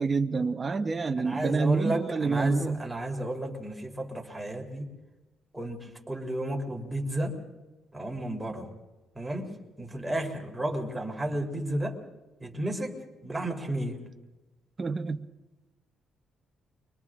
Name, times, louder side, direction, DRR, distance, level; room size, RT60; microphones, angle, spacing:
voice 1, 0.0-2.9 14.8-15.3, right 4 dB, 30° right, 1.0 m, -28 dB
voice 2, 1.2-4.9 5.5-7.3 7.9-8.7 9.1-9.5 9.8-12.0 12.4-14.0, right 1 dB, 10° right, 3.5 m, -32 dB
30.0 x 24.5 x 3.7 m
cardioid pair, 90°, 0 cm